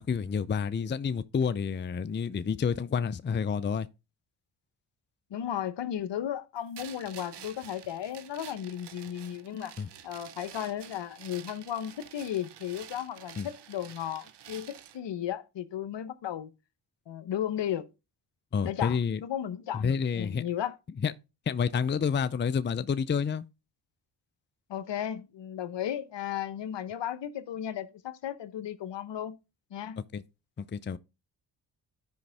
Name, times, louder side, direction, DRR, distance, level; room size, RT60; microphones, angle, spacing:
voice 1, 0.0-3.9 9.8-9.9 13.4-13.5 18.5-19.2 19.7-20.4 21.0-21.1 21.5-23.4 30.1-30.2 30.6-31.0, left 6 dB, 25° left, 0.5 m, -29 dB
voice 2, 5.3-9.8 10.0-16.5 17.1-17.9 18.6-20.8 24.7-29.4 29.7-30.0, left 10 dB, 60° left, 1.0 m, -35 dB
sound 1, 6.7-15.0, right 10 dB, 55° right, 1.0 m, -49 dB
11.5 x 5.2 x 3.4 m
supercardioid pair, 50°, 48 cm